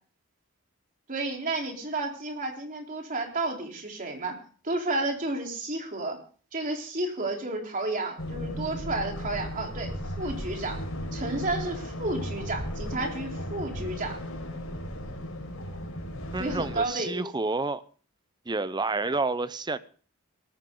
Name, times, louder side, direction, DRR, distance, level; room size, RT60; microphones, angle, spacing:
voice 1, 1.1-4.3 4.6-6.2 6.5-10.8 11.1-14.2 16.4-17.2, right 2 dB, 40° right, 4.0 m, -31 dB
sound 1, 8.2-16.8, equal, 85° left, 4.7 m, -35 dB
voice 2, 16.3-17.8 18.5-19.8, right 3 dB, 20° right, 0.7 m, -29 dB
18.5 x 14.5 x 3.9 m
head